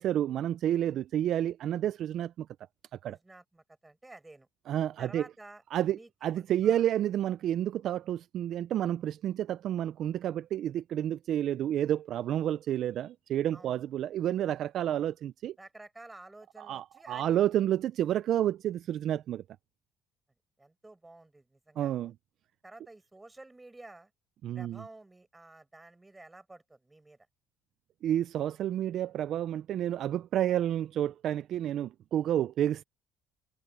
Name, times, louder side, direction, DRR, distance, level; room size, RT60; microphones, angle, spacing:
voice 1, 0.0-2.5 3.0-3.2 4.7-5.2 5.7-15.5 16.6-19.4 21.8-22.1 24.4-24.8 28.0-32.8, right 11 dB, 45° right, 0.3 m, -30 dB
voice 2, 3.0-4.5 5.0-5.6 5.9-6.1 6.4-6.9 13.5-13.8 15.6-17.7 20.6-22.1 22.6-24.1 24.5-27.2, right 2 dB, 10° right, 5.1 m, -51 dB
cardioid pair, 165°, 0 cm